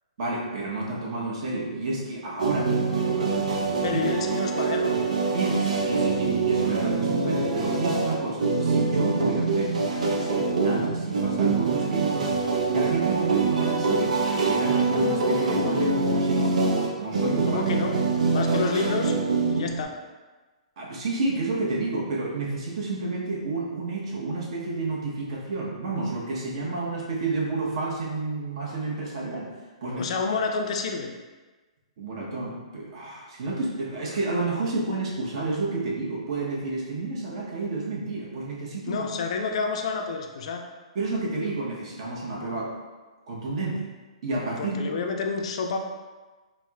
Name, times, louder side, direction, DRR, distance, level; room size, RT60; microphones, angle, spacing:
voice 1, 0.2-4.0 5.3-12.4 12.7-16.6 16.9-17.6 20.8-29.5 29.8-30.1 32.0-39.0 40.9-42.7 43.3-43.9 44.2-44.8, right 2 dB, 55° right, -3 dB, 0.8 m, -30 dB
sound 1, 2.4-19.8, right 4 dB, 90° right, 0.5 m, -25 dB
voice 2, 3.8-5.0 17.4-18.0 18.3-19.2 19.5-19.9 29.9-31.1 38.9-40.6 44.6-45.8, left 4 dB, 60° left, 3 dB, 0.4 m, -29 dB
4.1 x 2.0 x 2.2 m, 1.3 s
hypercardioid pair, 140°, 4 cm